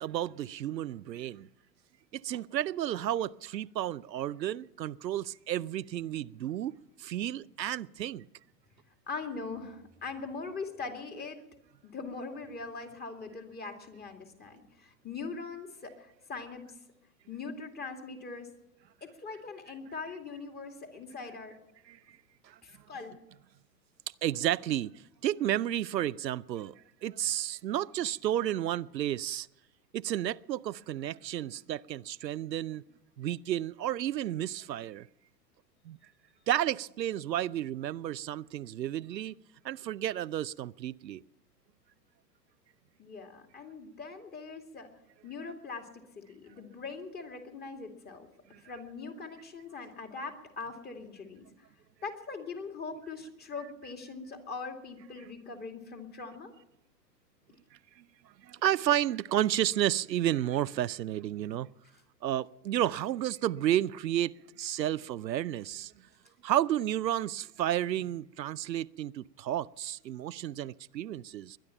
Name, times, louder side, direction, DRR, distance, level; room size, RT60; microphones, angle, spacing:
voice 1, 0.0-1.5 2.1-6.7 7.0-8.3 21.9-22.0 22.4-22.6 24.2-26.7 27.0-29.5 29.9-32.8 33.2-35.1 35.9-36.0 36.5-39.4 39.6-41.2 48.5-48.6 58.4-61.7 62.2-65.9 66.4-71.6, right 12 dB, 80° right, 0.6 m, -32 dB
voice 2, 9.1-11.4 11.8-16.6 17.3-18.5 19.0-21.6 22.6-23.1 43.0-44.9 45.2-48.3 48.6-51.7 52.0-56.5, left 4 dB, 20° left, 2.4 m, -41 dB
21.5 x 10.5 x 5.8 m
figure-of-eight pair, 105°, 50 cm